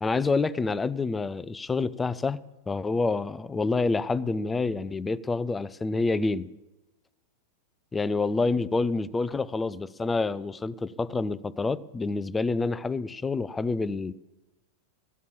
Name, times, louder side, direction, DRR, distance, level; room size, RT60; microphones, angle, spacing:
voice 1, 0.0-6.5 7.9-14.1, left 3 dB, 15° left, 0.5 m, -28 dB
15.5 x 9.5 x 7.4 m
figure-of-eight pair, 90°, 0 cm